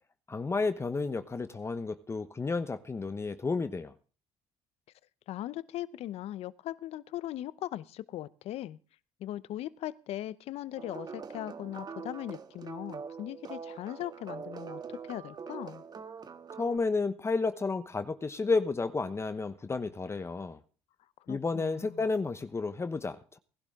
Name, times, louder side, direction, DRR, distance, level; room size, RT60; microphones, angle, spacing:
voice 1, 0.3-3.9 16.6-20.6 21.3-23.4, left 4 dB, 25° left, 1.0 m, -31 dB
voice 2, 5.3-8.8 9.2-15.8 21.3-22.0, left 13 dB, 70° left, 0.9 m, -39 dB
sound 1, 10.8-16.8, right 6 dB, 40° right, 1.6 m, -43 dB
19.0 x 12.0 x 3.7 m
supercardioid pair, 85°, 11 cm